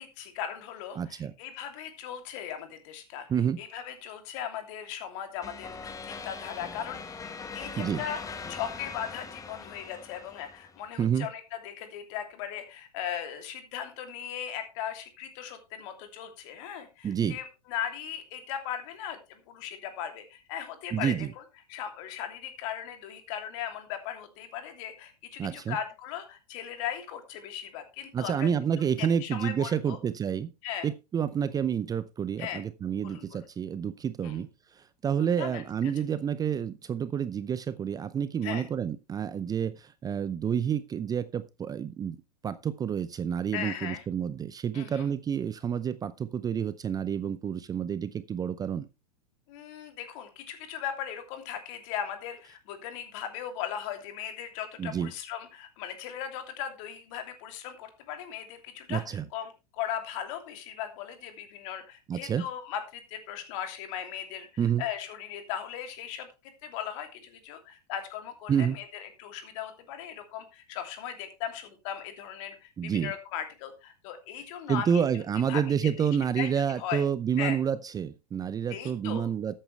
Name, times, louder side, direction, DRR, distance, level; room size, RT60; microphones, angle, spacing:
voice 1, 0.0-3.3 3.6-7.0 7.5-8.2 8.5-21.4 21.7-28.5 29.0-30.0 30.6-30.9 32.4-32.6 33.0-33.4 34.2-34.4 35.4-35.6 38.4-38.6 43.5-44.0 44.7-45.1 49.5-66.3 66.6-75.2 75.5-75.6 76.0-76.1 76.4-77.0 77.4-77.6 78.7-79.3, left 9 dB, 50° left, 6 dB, 2.9 m, -38 dB
voice 2, 1.0-1.3 3.3-3.6 7.8-8.0 11.0-11.3 17.0-17.4 20.9-21.3 25.4-25.8 28.1-30.5 30.8-42.2 42.4-48.9 54.8-55.1 58.9-59.2 62.1-62.4 64.6-64.8 68.5-68.8 72.8-73.1 74.7-79.6, right 8 dB, 20° right, 15 dB, 0.6 m, -29 dB
sound 1, 5.4-10.9, left 5 dB, 15° left, 1.5 m, -41 dB
13.0 x 8.9 x 3.3 m, 0.26 s
hypercardioid pair, 105°, 20 cm